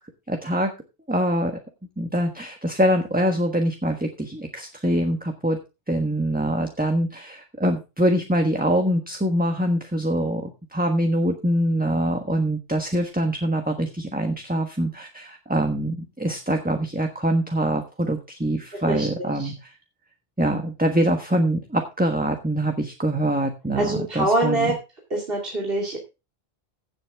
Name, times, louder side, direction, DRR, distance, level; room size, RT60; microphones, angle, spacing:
voice 1, 0.3-0.7 1.1-1.5 2.0-5.6 5.9-19.7 20.4-24.7, right 1 dB, 10° right, 4 dB, 1.3 m, -24 dB
voice 2, 18.9-19.5 23.7-24.7 25.1-26.0, right 2 dB, 60° right, -1 dB, 2.7 m, -24 dB
16.0 x 7.7 x 3.5 m, 0.28 s
omnidirectional pair, 1.1 m